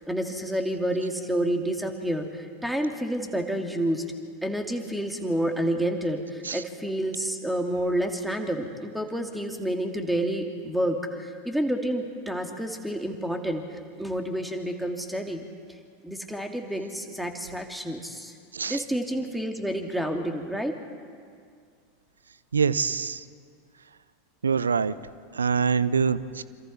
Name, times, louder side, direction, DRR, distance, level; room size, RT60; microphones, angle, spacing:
voice 1, 0.1-4.0 4.4-15.4 16.0-18.3 18.7-20.8, right 1 dB, 5° right, 4 dB, 2.5 m, -29 dB
voice 2, 22.5-23.2 24.4-24.9 25.3-26.4, right 6 dB, 80° right, 17 dB, 0.7 m, -25 dB
27.0 x 27.0 x 4.3 m, 2.1 s
figure-of-eight pair, 85°, 0 cm